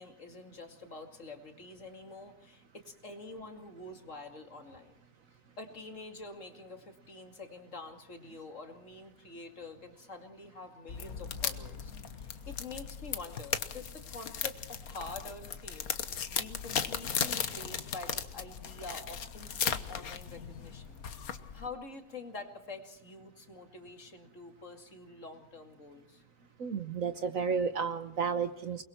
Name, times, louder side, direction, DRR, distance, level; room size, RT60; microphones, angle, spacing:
voice 1, 0.0-4.9 5.6-11.9 12.2-21.0 21.5-26.2, left 3 dB, 50° left, 5 dB, 2.7 m, -47 dB
sound 1, 10.9-21.7, left 7 dB, 65° left, 1.6 m, -37 dB
voice 2, 26.6-28.8, right 5 dB, 60° right, 9 dB, 1.4 m, -32 dB
29.0 x 21.5 x 4.4 m, 0.84 s
omnidirectional pair, 1.7 m